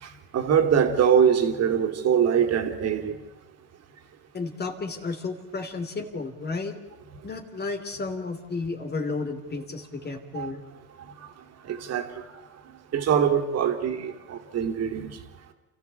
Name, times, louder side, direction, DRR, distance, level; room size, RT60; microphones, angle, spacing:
voice 1, 0.0-3.1 10.3-10.5 11.6-12.2 12.9-15.2, right 8 dB, 45° right, 5 dB, 3.2 m, -23 dB
voice 2, 4.3-6.8 7.2-10.6, left 3 dB, 30° left, 6 dB, 3.0 m, -32 dB
28.5 x 14.5 x 8.4 m, 1.1 s
supercardioid pair, 90°, 35 cm